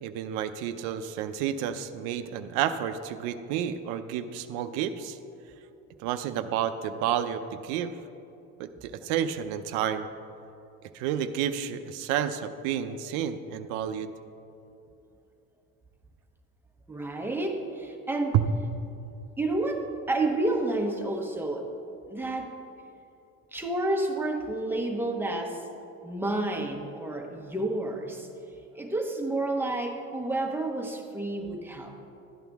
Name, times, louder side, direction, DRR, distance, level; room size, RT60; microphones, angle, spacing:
voice 1, 0.0-5.2 6.0-7.9 8.6-10.1 10.9-14.1 18.3-18.4, right 9 dB, 85° right, 9 dB, 0.6 m, -30 dB
voice 2, 16.9-18.4 19.4-21.7 22.1-22.5 23.5-25.6 26.0-28.3 28.7-31.9, right 2 dB, 5° right, 2 dB, 1.0 m, -30 dB
12.5 x 9.0 x 3.5 m, 2.8 s
cardioid pair, 110°, 30 cm